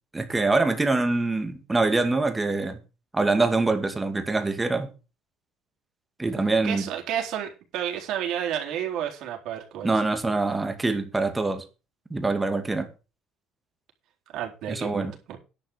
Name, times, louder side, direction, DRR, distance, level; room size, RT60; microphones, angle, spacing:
voice 1, 0.1-2.8 3.1-4.9 6.2-6.9 9.8-11.6 12.1-12.9 14.7-15.1, right 3 dB, 15° right, 2.3 m, -24 dB
voice 2, 6.6-9.9 14.3-15.4, right 10 dB, 65° right, 4.2 m, -31 dB
11.0 x 5.9 x 7.3 m
cardioid pair, 115°, 0 cm